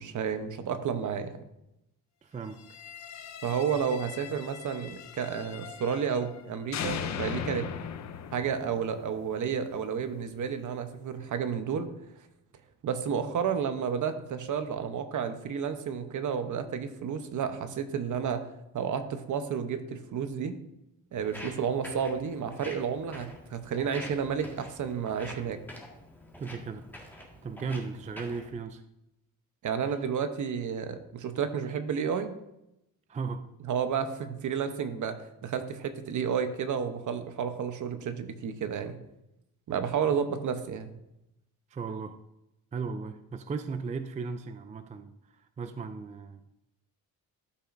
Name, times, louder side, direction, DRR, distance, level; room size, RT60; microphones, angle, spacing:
voice 1, 0.0-1.3 3.4-7.7 8.3-11.9 12.8-18.4 18.7-20.6 21.1-25.6 29.6-32.4 33.6-35.2 35.4-39.0 39.7-41.0, right 7 dB, 55° right, 9 dB, 0.9 m, -31 dB
voice 2, 2.2-2.6 26.4-28.8 29.9-30.0 33.1-33.5 41.7-42.2 42.7-46.4, right 5 dB, 20° right, 9 dB, 0.4 m, -37 dB
sound 1, 2.6-6.4 6.7-9.7, left 8 dB, 50° left, 0.6 m, -39 dB
Walk footsteps, 21.2-28.5, left 1 dB, 5° left, 1.7 m, -47 dB
13.0 x 5.6 x 2.6 m, 0.87 s
cardioid pair, 120°, 37 cm